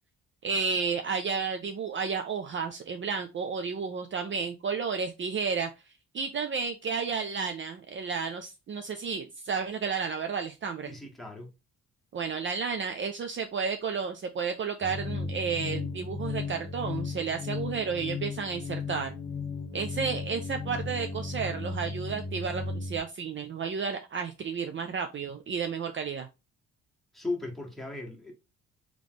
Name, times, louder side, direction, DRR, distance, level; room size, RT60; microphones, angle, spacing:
voice 1, 0.4-5.7 6.1-10.9 12.1-19.1 19.7-26.3, right 5 dB, 40° right, 0.5 m, -32 dB
voice 2, 10.9-11.5 27.1-28.3, left 2 dB, ahead, 1.5 m, -36 dB
sound 1, 14.8-23.0, left 4 dB, 20° left, 1.5 m, -35 dB
3.4 x 3.1 x 3.9 m
cardioid pair, 90°, 30 cm